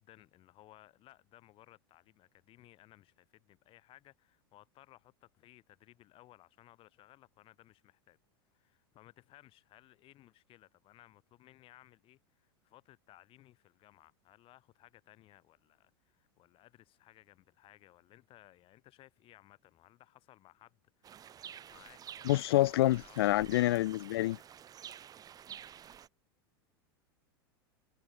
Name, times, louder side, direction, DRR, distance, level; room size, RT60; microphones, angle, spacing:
voice 1, 0.0-8.2 8.5-23.4, left 15 dB, 45° left, 7.8 m, -61 dB
sound 1, 21.0-26.1, right 9 dB, 30° right, 1.1 m, -50 dB
voice 2, 22.3-24.4, left 16 dB, 75° left, 0.4 m, -27 dB
hypercardioid pair, 105°, 13 cm